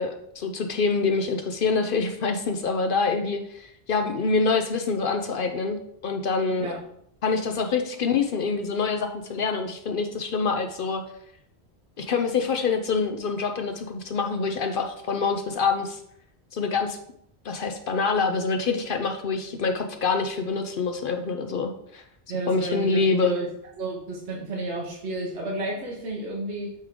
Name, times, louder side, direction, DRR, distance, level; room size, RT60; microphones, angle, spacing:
voice 1, 0.0-6.7 7.2-11.0 12.0-16.0 16.5-17.0 17.4-22.0 22.5-23.3, left 4 dB, 60° left, 5 dB, 0.7 m, -26 dB
voice 2, 22.3-23.5 23.8-26.7, right 2 dB, 80° right, -2 dB, 1.3 m, -32 dB
8.4 x 3.6 x 3.7 m, 0.72 s
omnidirectional pair, 1.1 m